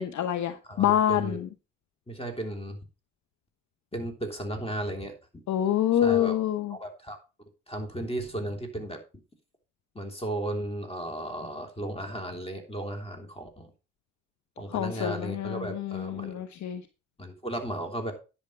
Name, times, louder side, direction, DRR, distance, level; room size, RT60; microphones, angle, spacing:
voice 1, 0.0-1.5 5.5-6.7 14.7-16.8, left 10 dB, 50° left, 0.9 m, -26 dB
voice 2, 0.6-1.4 2.1-2.8 3.9-5.1 5.9-6.3 6.7-7.2 7.7-9.0 9.9-13.7 14.6-16.4 17.2-18.1, right 1 dB, 15° left, 3.2 m, -35 dB
10.5 x 7.0 x 4.4 m
hypercardioid pair, 50°, 37 cm